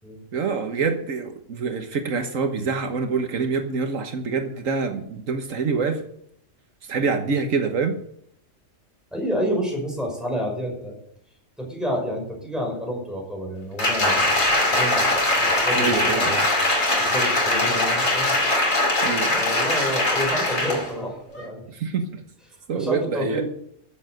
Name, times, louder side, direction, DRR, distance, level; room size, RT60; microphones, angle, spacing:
voice 1, 0.3-6.0 6.9-7.9 15.8-16.4 19.0-19.4 21.7-22.2 22.7-23.4, right 5 dB, 80° right, 6 dB, 1.6 m, -26 dB
voice 2, 9.1-11.0 11.6-16.5 17.0-18.4 19.3-21.6 22.7-23.4, equal, ahead, -1 dB, 5.6 m, -29 dB
Applause, 13.8-20.9 21.3-21.5, left 2 dB, 80° left, 3.6 m, -21 dB
13.5 x 8.0 x 6.6 m, 0.68 s
omnidirectional pair, 1.3 m